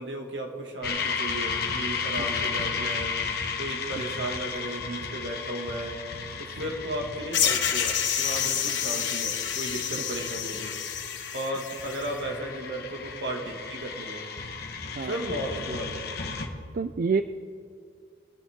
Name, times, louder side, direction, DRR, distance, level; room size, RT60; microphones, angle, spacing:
voice 1, 0.0-3.1 3.6-6.0 6.4-10.7 11.3-14.2 15.0-16.1, right 1 dB, 70° right, 1 dB, 2.2 m, -35 dB
sound 1, 0.8-16.5, left 5 dB, 60° left, 1.3 m, -34 dB
sound 2, 7.3-12.1, left 8 dB, 85° left, 1.3 m, -28 dB
voice 2, 16.7-17.2, right 5 dB, 50° right, 11 dB, 0.4 m, -27 dB
23.0 x 10.5 x 3.7 m, 2.2 s
head